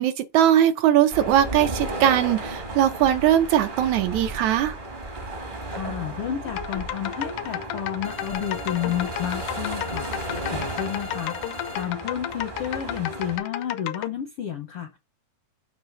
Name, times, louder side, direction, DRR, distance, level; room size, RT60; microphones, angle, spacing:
voice 1, 0.0-4.8, right 11 dB, 75° right, 1.8 m, -20 dB
sound 1, 1.1-13.4, right 2 dB, 40° right, 0.7 m, -34 dB
voice 2, 5.7-15.0, left 10 dB, 75° left, 1.3 m, -31 dB
sound 2, 6.4-14.1, left 12 dB, 90° left, 2.2 m, -33 dB
sound 3, 8.0-11.9, left 5 dB, 45° left, 0.6 m, -40 dB
7.4 x 3.1 x 5.7 m
omnidirectional pair, 3.6 m